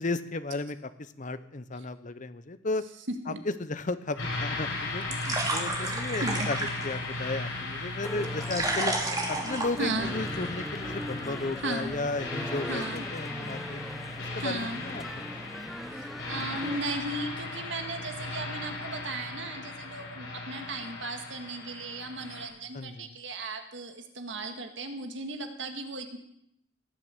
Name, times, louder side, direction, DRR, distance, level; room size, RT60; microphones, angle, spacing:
voice 1, 0.0-2.9 3.3-6.6 6.8-8.9 9.3-13.9 14.3-15.3 22.7-23.2, left 3 dB, 40° left, 13 dB, 0.8 m, -34 dB
sound 1, 4.2-22.5, left 2 dB, 80° left, 6.2 m, -37 dB
sound 2, 4.6-10.5, right 2 dB, 20° right, 2.6 m, -34 dB
Male speech man speaking, 8.0-16.8, equal, ahead, 0.8 m, -40 dB
voice 2, 9.8-10.2 11.6-11.9 12.7-13.0 14.4-14.8 15.9-26.2, right 2 dB, 65° right, 6 dB, 1.9 m, -36 dB
18.0 x 7.6 x 8.3 m, 0.74 s
head